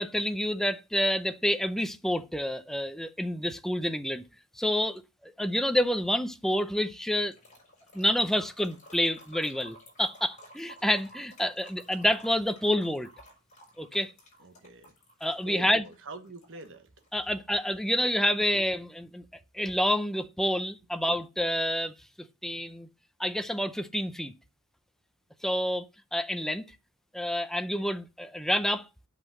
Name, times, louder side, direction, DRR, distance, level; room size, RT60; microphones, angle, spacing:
voice 1, 0.0-4.2 4.6-7.3 7.9-13.1 13.8-14.1 15.2-15.8 17.1-19.2 19.5-22.9 23.2-24.3 25.4-25.8 26.1-26.6 27.1-28.9, equal, ahead, 0.6 m, -28 dB
sound 1, 7.3-17.3, equal, 35° left, 4.7 m, -53 dB
voice 2, 14.4-14.9 15.4-16.9, right 2 dB, 60° right, 1.2 m, -45 dB
8.2 x 5.8 x 7.3 m
head